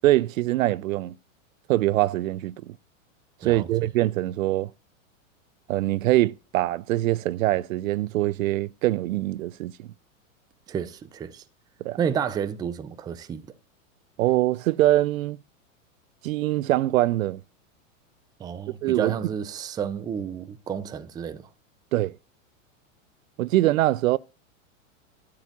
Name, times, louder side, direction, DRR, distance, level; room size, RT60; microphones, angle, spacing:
voice 1, 0.0-1.1 1.7-2.7 3.4-4.7 5.7-9.9 11.8-12.0 14.2-15.4 16.2-17.4 18.8-19.1 21.9-22.2 23.4-24.2, right 16 dB, 75° right, 0.5 m, -23 dB
voice 2, 10.7-11.4 12.0-13.5 18.4-21.5, right 7 dB, 10° right, 0.5 m, -31 dB
12.0 x 4.9 x 7.0 m
hypercardioid pair, 135°, 40 cm